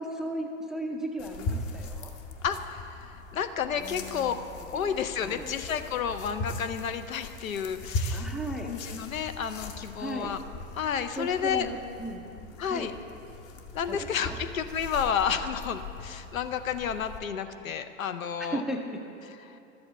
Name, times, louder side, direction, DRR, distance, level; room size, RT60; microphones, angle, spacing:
voice 1, 0.0-2.1 3.8-4.4 4.7-4.9 5.2-5.5 8.1-8.8 10.0-10.4 11.2-12.2 12.7-12.9 13.9-14.4 18.4-19.0 19.5-19.6, right 1 dB, ahead, 3 dB, 0.4 m, -36 dB
sound 1, 1.2-17.2, left 2 dB, 35° left, 0.9 m, -39 dB
voice 2, 2.4-4.3 4.7-8.3 8.6-10.4 10.7-11.7 12.6-12.9 13.7-18.6 19.5-19.6, left 7 dB, 80° left, 9 dB, 0.7 m, -31 dB
12.5 x 7.8 x 4.2 m, 2.7 s
hypercardioid pair, 100°, 40 cm